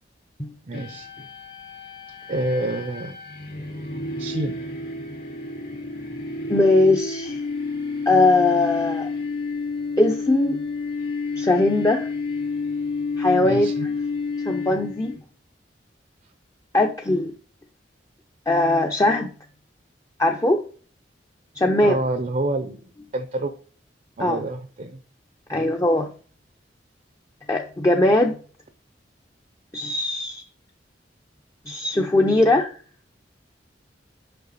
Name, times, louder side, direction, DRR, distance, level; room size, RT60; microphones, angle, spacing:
voice 1, 0.6-1.1 2.3-3.2 4.2-4.6 13.4-13.9 21.7-22.8 23.1-23.5 24.2-25.0 25.5-25.7, right 2 dB, 45° right, 0.6 m, -28 dB
sound 1, 0.7-15.2, left 3 dB, 55° left, 2.3 m, -30 dB
voice 2, 6.5-7.4 8.1-9.1 10.0-10.6 11.4-12.1 13.2-13.7 14.5-15.1 16.7-17.3 18.5-19.3 20.2-20.6 21.5-22.0 24.2-24.4 25.5-26.1 27.5-28.4 29.7-30.4 31.7-32.7, left 2 dB, 20° left, 0.6 m, -20 dB
6.8 x 5.7 x 4.0 m
head